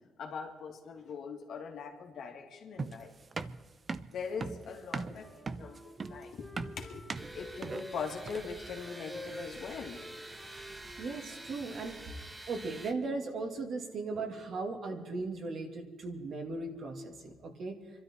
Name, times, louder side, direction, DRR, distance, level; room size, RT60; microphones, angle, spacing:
voice 1, 0.2-3.1 4.1-10.0, left 5 dB, 70° left, 2 dB, 2.4 m, -41 dB
sound 1, 2.8-8.6, right 4 dB, 35° right, 0.7 m, -39 dB
Wind instrument woodwind instrument, 5.1-8.3 8.7-12.2, left 1 dB, ahead, 2.3 m, -50 dB
sound 2, 7.1-12.9, right 1 dB, 20° right, 1.5 m, -48 dB
voice 2, 11.0-17.8, right 3 dB, 60° right, 3 dB, 2.5 m, -38 dB
24.5 x 12.5 x 4.6 m, 1.4 s
cardioid pair, 90°, 0 cm